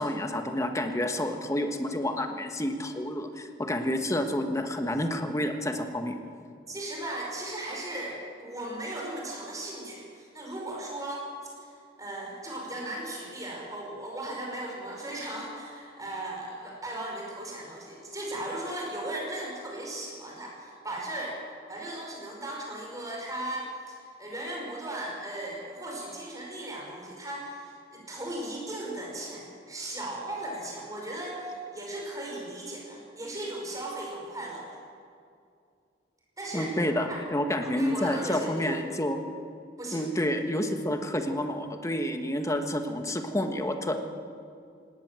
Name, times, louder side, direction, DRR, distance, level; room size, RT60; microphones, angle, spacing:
voice 1, 0.0-6.2 36.5-39.2 39.9-44.0, left 1 dB, 15° left, 6 dB, 1.4 m, -29 dB
voice 2, 6.7-21.4 21.7-34.8 36.4-36.7 37.1-37.2 37.7-38.8 39.8-40.0, right 1 dB, 20° right, -2 dB, 5.4 m, -37 dB
18.5 x 18.5 x 7.6 m, 2.3 s
head